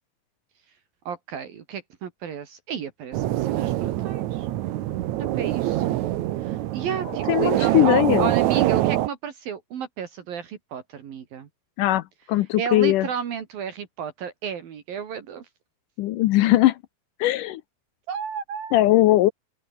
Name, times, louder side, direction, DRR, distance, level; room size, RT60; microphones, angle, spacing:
voice 1, 1.1-4.5 5.2-6.1 6.4-11.5 12.5-15.5 18.1-18.7, right 7 dB, 65° right, 3.9 m, -33 dB
sound 1, 3.1-9.1, right 14 dB, 90° right, 1.6 m, -24 dB
voice 2, 7.3-8.3 11.8-13.1 16.0-16.8 17.2-17.6 18.7-19.3, left 15 dB, 80° left, 1.9 m, -19 dB
open air
omnidirectional pair, 4.6 m